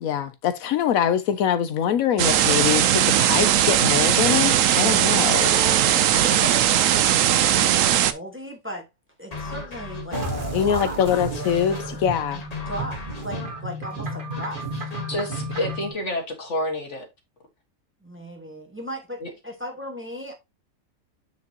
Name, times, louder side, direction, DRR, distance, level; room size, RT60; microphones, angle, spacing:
voice 1, 0.0-5.5 10.5-12.4, left 9 dB, 80° left, 1.1 m, -23 dB
sound 1, 2.2-8.1, right 11 dB, 70° right, 1.0 m, -19 dB
voice 2, 5.4-8.9 9.2-10.2 10.5-11.2 12.7-14.6 18.0-19.2 19.4-20.3, equal, 10° right, 1.4 m, -36 dB
sound 2, 9.3-15.7, left 3 dB, 30° left, 1.1 m, -38 dB
sound 3, 10.1-15.9, right 1 dB, 40° right, 1.6 m, -32 dB
voice 3, 15.1-17.1 19.2-19.3, left 1 dB, 55° left, 2.0 m, -28 dB
7.2 x 6.2 x 2.8 m
omnidirectional pair, 1.5 m